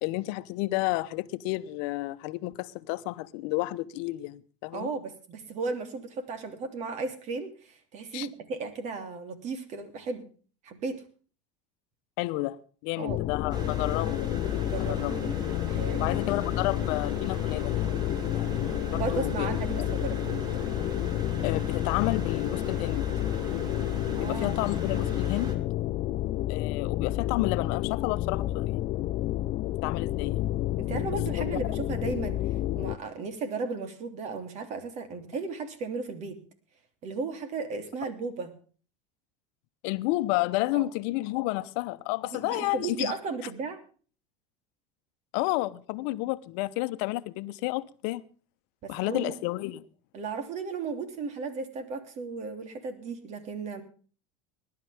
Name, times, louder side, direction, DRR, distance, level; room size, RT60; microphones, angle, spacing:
voice 1, 0.0-4.9 8.1-8.3 12.2-14.3 14.8-15.1 16.0-17.8 18.3-19.5 19.8-19.9 21.4-23.0 24.2-25.5 26.5-28.9 29.8-30.5 31.3-31.4 39.8-43.1 45.3-48.2 48.9-49.8, left 19 dB, 65° left, 1.0 m, -31 dB
voice 2, 4.7-10.3 10.6-11.0 13.0-13.2 14.6-15.3 15.7-16.2 18.9-20.6 24.1-24.6 30.8-32.4 32.8-36.4 37.0-38.5 40.7-40.9 42.2-43.8 48.8-49.3 50.1-53.8, right 4 dB, 50° right, 3.2 m, -35 dB
sound 1, 13.1-33.0, left 15 dB, 50° left, 0.6 m, -30 dB
sound 2, 13.5-25.6, right 2 dB, 30° right, 3.1 m, -39 dB
20.5 x 11.5 x 3.6 m
supercardioid pair, 95°, 15 cm